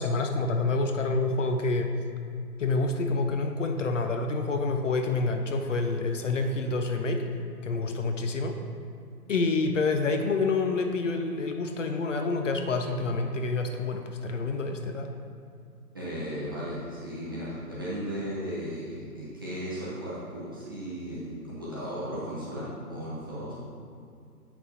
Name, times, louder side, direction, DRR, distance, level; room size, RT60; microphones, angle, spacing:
voice 1, 0.0-1.9 2.6-7.2 7.6-8.6 9.3-15.1, left 3 dB, 50° left, 5 dB, 0.6 m, -28 dB
voice 2, 15.9-23.5, equal, 15° right, -9 dB, 0.6 m, -36 dB
7.8 x 5.9 x 2.8 m, 2.4 s
hypercardioid pair, 155°, 47 cm